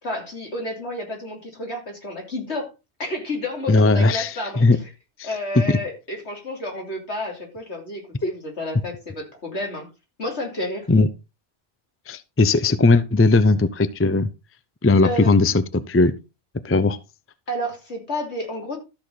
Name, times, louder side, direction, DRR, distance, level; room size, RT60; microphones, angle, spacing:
voice 1, 0.0-2.7 3.0-4.7 5.2-9.9 10.2-10.9 12.7-12.8 15.0-15.3 17.5-18.8, left 1 dB, 65° left, 2 dB, 3.3 m, -30 dB
voice 2, 3.7-4.8 5.2-5.3 5.5-5.8 8.2-8.3 10.9-11.1 12.1-14.3 14.8-16.1 16.6-17.0, left 3 dB, 20° left, 14 dB, 0.4 m, -18 dB
13.0 x 6.6 x 4.0 m, 0.27 s
omnidirectional pair, 1.2 m